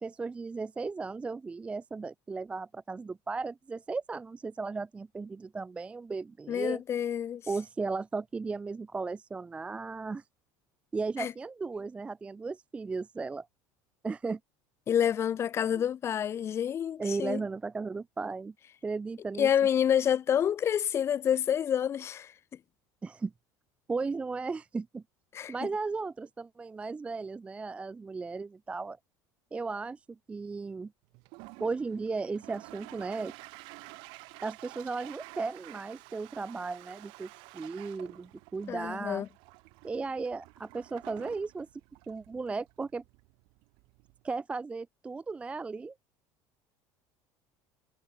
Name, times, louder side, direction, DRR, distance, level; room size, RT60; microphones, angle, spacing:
voice 1, 0.0-6.8 7.5-10.2 10.9-13.5 14.0-14.4 17.0-18.5 18.8-19.5 23.0-23.3 23.9-25.0 25.5-29.0 29.5-30.9 31.6-33.3 34.4-39.2 39.8-41.7 42.1-43.0 44.2-45.9, right 4 dB, 15° right, 0.3 m, -36 dB
voice 2, 6.5-7.4 11.2-11.3 14.9-17.4 19.4-22.3 25.3-25.7 38.7-39.3, left 9 dB, 30° left, 0.6 m, -28 dB
Toilet flush, 31.1-44.3, right 28 dB, 70° right, 2.4 m, -51 dB
cardioid pair, 135°, 9 cm